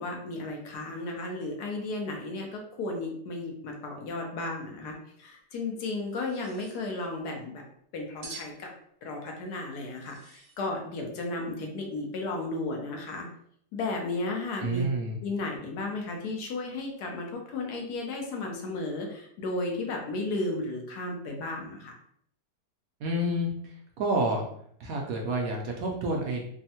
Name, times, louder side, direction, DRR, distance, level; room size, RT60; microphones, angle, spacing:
voice 1, 0.0-7.6 7.9-8.7 9.0-13.3 13.7-14.9 15.2-21.9, left 2 dB, 75° left, 2 dB, 1.2 m, -34 dB
sound 1, 6.1-6.8 8.2-8.6 9.9-10.6, right 5 dB, 85° right, 0.5 m, -47 dB
voice 2, 14.6-15.2 23.0-23.5 24.0-24.5 24.8-26.4, right 1 dB, 70° right, 0 dB, 0.9 m, -28 dB
3.5 x 2.0 x 2.7 m, 0.66 s
omnidirectional pair, 1.8 m